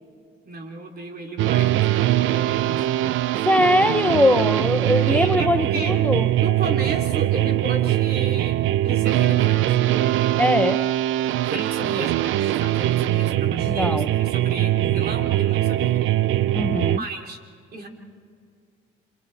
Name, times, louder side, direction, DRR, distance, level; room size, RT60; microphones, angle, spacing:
voice 1, 0.4-2.8 5.0-6.0 6.4-9.8 11.4-16.1 16.5-16.6 17.0-17.4 17.7-17.9, right 2 dB, 50° right, 2 dB, 3.3 m, -33 dB
sound 1, 1.4-17.0, right 14 dB, 80° right, 0.4 m, -22 dB
voice 2, 3.4-6.3 10.4-10.9 13.7-14.1 16.5-17.0, left 1 dB, 5° left, 8 dB, 0.7 m, -21 dB
28.5 x 26.5 x 3.4 m, 2.3 s
cardioid pair, 90°, 20 cm